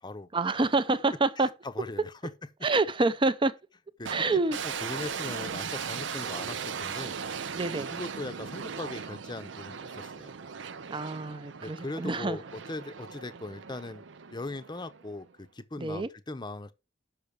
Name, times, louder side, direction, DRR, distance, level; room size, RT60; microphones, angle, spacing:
voice 1, 0.3-1.5 2.6-3.5 4.1-4.6 7.6-7.9 10.9-12.4 15.8-16.1, right 3 dB, 30° right, 0.6 m, -27 dB
voice 2, 1.4-2.3 4.0-7.2 7.9-10.4 11.6-14.0 14.3-16.7, left 2 dB, 25° left, 0.7 m, -39 dB
sound 1, 4.1-15.3, right 6 dB, 85° right, 0.6 m, -38 dB
6.7 x 5.7 x 7.2 m
head